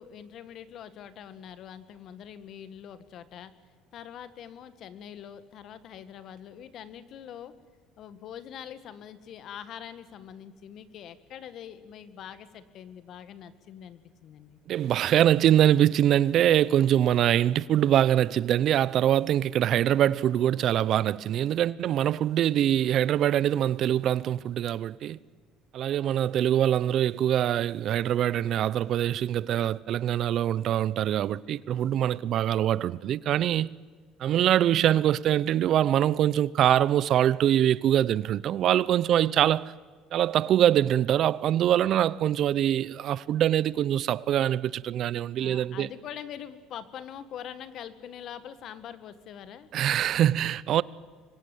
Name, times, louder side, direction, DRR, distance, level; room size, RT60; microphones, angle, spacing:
voice 1, 0.0-3.5 3.9-7.5 8.0-14.6 39.1-39.4 45.4-49.7, left 9 dB, 60° left, 1.9 m, -44 dB
voice 2, 14.7-25.2 25.7-33.7 34.2-39.7 40.1-45.9 49.7-50.8, right 11 dB, 55° right, 0.7 m, -24 dB
25.5 x 23.0 x 9.3 m
supercardioid pair, 85°, 0 cm